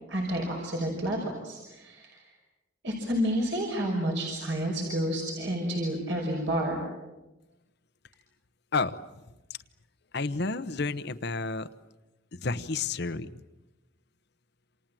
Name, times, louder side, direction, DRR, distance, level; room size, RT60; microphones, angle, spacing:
voice 1, 0.1-2.3 2.8-6.8, equal, 60° right, 0 dB, 5.7 m, -30 dB
voice 2, 10.1-11.7 12.4-13.4, left 3 dB, 55° left, 11 dB, 0.9 m, -30 dB
28.5 x 27.5 x 7.6 m, 1.1 s
head